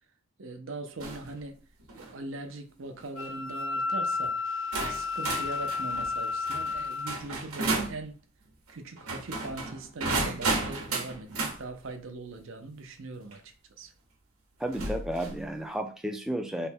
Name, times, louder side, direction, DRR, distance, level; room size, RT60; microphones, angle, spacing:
voice 1, 0.4-1.6 2.0-4.4 4.7-8.2 8.7-13.9, right 2 dB, 65° right, 0.6 m, -41 dB
sound 1, 1.0-1.3 1.8-2.1 3.0-3.3 4.1-4.2 4.7-8.0 9.0-11.6 13.3-13.4 14.7-15.4, right 3 dB, 80° right, 1.1 m, -33 dB
Wind instrument woodwind instrument, 3.1-7.2, left 4 dB, 70° left, 0.6 m, -32 dB
voice 2, 14.6-16.7, right 1 dB, ahead, 0.4 m, -32 dB
3.3 x 2.2 x 4.3 m
head